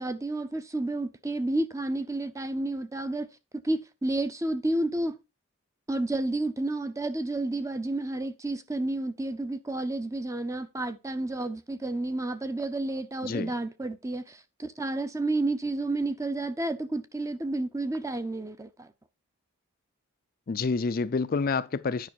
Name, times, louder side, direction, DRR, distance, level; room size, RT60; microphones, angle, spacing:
voice 1, 0.0-3.3 3.6-5.2 5.9-18.9, right 2 dB, 15° right, 0.6 m, -31 dB
voice 2, 20.5-22.1, left 4 dB, 40° left, 0.4 m, -28 dB
9.6 x 5.5 x 4.3 m
head